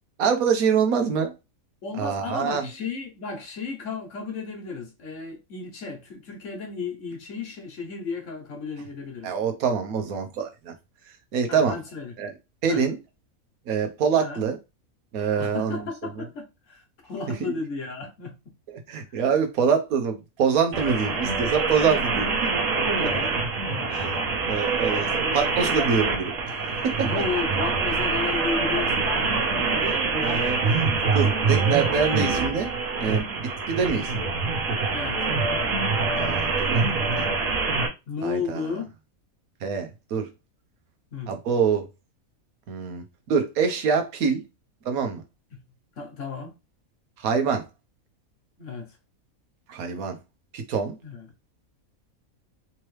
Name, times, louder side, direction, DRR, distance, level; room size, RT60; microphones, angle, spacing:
voice 1, 0.2-1.3 1.9-2.6 9.2-10.7 11.3-11.8 12.2-12.3 12.6-13.0 13.7-14.6 15.1-15.8 16.2-16.3 17.4-17.5 18.9-22.3 23.0-23.1 23.9-24.1 24.5-26.9 29.8-30.6 31.1-32.7 33.0-34.1 36.2-37.3 38.2-38.6 39.6-40.3 41.3-41.9 42.7-44.4 44.8-45.2 47.2-47.6 49.7-50.2 50.5-51.0, right 6 dB, 85° right, 1.3 m, -25 dB
voice 2, 1.8-9.3 11.5-12.1 12.7-12.8 14.2-14.4 15.4-18.4 19.1-19.4 21.1-21.2 23.0-23.4 23.7-24.0 27.0-29.7 34.9-35.3 38.1-38.9 41.1-41.3 46.0-46.6 48.6-49.0 51.0-51.2, left 5 dB, 60° left, 1.3 m, -34 dB
sound 1, 20.7-37.9, right 4 dB, 65° right, 1.3 m, -25 dB
3.6 x 3.0 x 3.2 m
omnidirectional pair, 1.5 m